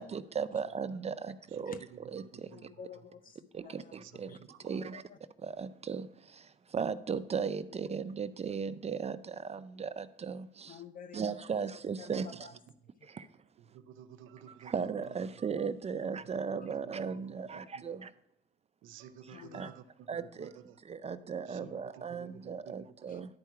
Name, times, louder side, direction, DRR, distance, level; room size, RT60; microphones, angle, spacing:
voice 1, 0.0-1.8 2.1-2.7 3.5-4.3 4.6-5.0 5.4-10.8 11.1-12.3 13.0-13.3 14.6-18.1 19.3-19.7 20.1-20.5 20.8-23.3, right 6 dB, 30° right, 13 dB, 0.4 m, -37 dB
voice 2, 1.5-2.0 2.3-2.6 3.9-4.6 13.6-15.5 16.5-16.9 17.3-17.9 18.8-20.8 21.5-23.2, right 8 dB, 90° right, 10 dB, 0.6 m, -53 dB
voice 3, 2.3-5.2 10.7-12.5 13.0-13.1 14.5-14.6 16.0-16.1 16.6-16.7 17.1-17.3 17.6-17.7 19.3-19.7 20.4-20.5 23.1-23.4, left 7 dB, 45° left, 11 dB, 0.5 m, -52 dB
10.5 x 4.6 x 4.5 m, 0.80 s
cardioid pair, 90°, 20 cm